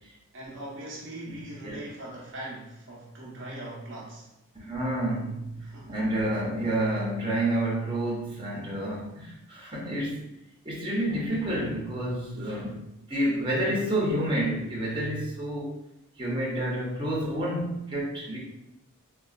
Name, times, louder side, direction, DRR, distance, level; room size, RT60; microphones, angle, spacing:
voice 1, 0.3-4.3 5.6-6.0, right 1 dB, 55° right, -4 dB, 0.7 m, -40 dB
voice 2, 4.5-10.2 10.6-15.7 16.2-18.4, right 1 dB, 20° right, -5 dB, 0.8 m, -29 dB
3.7 x 2.3 x 2.4 m, 0.83 s
head